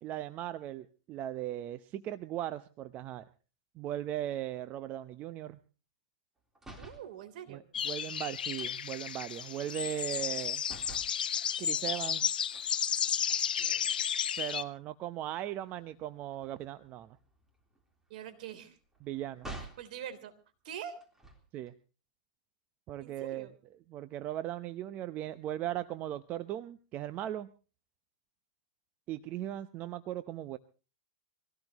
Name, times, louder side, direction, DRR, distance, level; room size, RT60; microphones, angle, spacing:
voice 1, 0.0-3.3 3.8-5.6 7.5-10.6 11.6-12.3 14.4-17.2 19.0-19.5 21.5-21.7 22.9-23.5 23.9-27.5 29.1-30.6, right 12 dB, 35° right, 13 dB, 0.8 m, -38 dB
sound 1, 6.5-7.1 8.6-10.4 10.6-11.2 12.5-13.5 14.0-14.2 14.5-19.9 21.0-21.7, right 2 dB, 10° right, 3.6 m, -51 dB
voice 2, 6.8-7.6 13.6-13.9 18.1-18.8 19.6-20.3 20.6-21.0 23.0-23.5, right 9 dB, 65° right, 9 dB, 3.5 m, -44 dB
sound 2, 7.7-14.6, left 8 dB, 90° left, 1.0 m, -33 dB
24.5 x 17.5 x 3.0 m, 0.35 s
hypercardioid pair, 130°, 5 cm